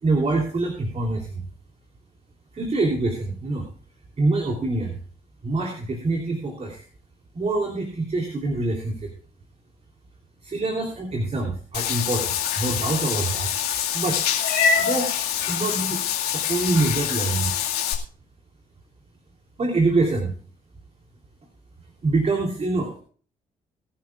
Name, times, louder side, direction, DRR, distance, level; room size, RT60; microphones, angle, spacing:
voice 1, 0.0-1.4 2.5-3.7 4.2-5.0 5.4-6.8 7.3-9.1 10.4-13.5 13.9-14.2 14.8-15.1 15.4-16.0 16.3-17.5 19.6-20.3 22.0-23.0, right 2 dB, 40° right, 2 dB, 3.3 m, -25 dB
Meow / Water / Bathtub (filling or washing), 11.7-17.9, left 8 dB, 80° left, 2.0 m, -25 dB
22.5 x 10.5 x 2.4 m, 0.42 s
supercardioid pair, 60°, 16 cm